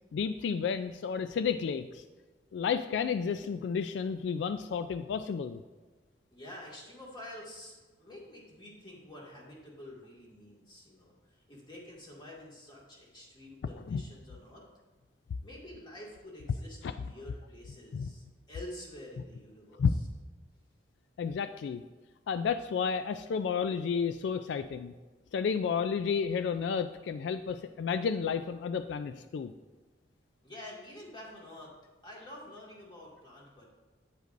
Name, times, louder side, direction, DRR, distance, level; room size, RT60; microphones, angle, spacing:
voice 1, 0.1-2.0 2.5-5.6 13.9-14.0 16.8-16.9 17.9-18.1 19.8-19.9 21.2-21.8 22.3-24.9 25.3-29.5, left 6 dB, 75° left, 10 dB, 0.3 m, -31 dB
voice 2, 6.3-14.7 15.4-19.8 30.4-31.7 32.0-33.6, left 1 dB, 25° left, -4 dB, 2.0 m, -48 dB
9.1 x 8.2 x 2.5 m, 1.3 s
head